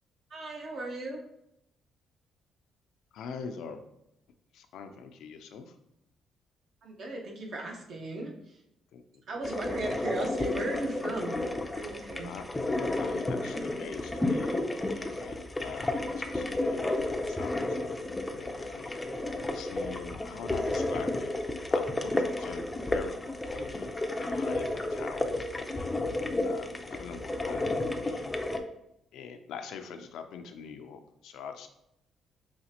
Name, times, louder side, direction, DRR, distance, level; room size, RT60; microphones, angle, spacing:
voice 1, 0.3-1.2 6.8-8.6 9.3-11.4 11.7-12.3 26.9-27.0, right 2 dB, 60° right, 0 dB, 0.9 m, -36 dB
voice 2, 3.1-3.8 4.5-5.8 8.9-9.5 12.2-12.4 12.9-21.3 21.7-28.6 29.1-31.7, left 6 dB, 80° left, 7 dB, 0.4 m, -44 dB
sound 1, 9.4-28.6, left 2 dB, 15° left, 0.4 m, -32 dB
4.9 x 2.5 x 2.8 m, 0.80 s
cardioid pair, 95°, 0 cm